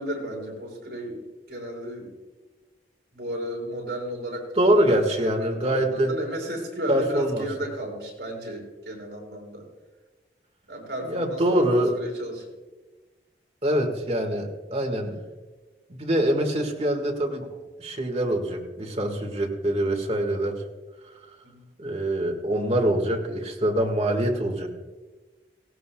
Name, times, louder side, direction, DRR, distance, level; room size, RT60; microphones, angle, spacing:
voice 1, 0.0-2.1 3.1-9.7 10.7-12.4 21.4-21.6, right 1 dB, 65° right, -1 dB, 5.1 m, -34 dB
voice 2, 4.5-6.1 6.9-7.4 11.0-11.9 13.6-15.2 15.9-17.5 17.8-20.5 21.8-24.7, right 1 dB, 35° right, 2 dB, 1.8 m, -24 dB
17.5 x 17.0 x 2.3 m, 1.3 s
head